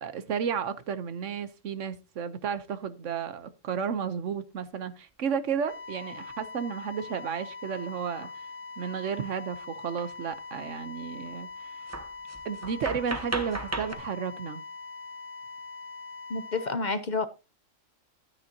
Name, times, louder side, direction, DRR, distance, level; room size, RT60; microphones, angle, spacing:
voice 1, 0.0-8.5 8.8-11.9 12.4-14.6, right 7 dB, 70° right, 1.3 m, -33 dB
sound 1, 5.7-16.7, left 4 dB, 65° left, 2.0 m, -42 dB
sound 2, 8.2-8.3 10.0-10.1 10.3-10.6 11.2-11.3 11.9-13.9, right 2 dB, 15° right, 0.8 m, -36 dB
voice 2, 16.3-17.3, left 3 dB, 40° left, 0.7 m, -29 dB
11.5 x 9.7 x 2.8 m
omnidirectional pair, 1.4 m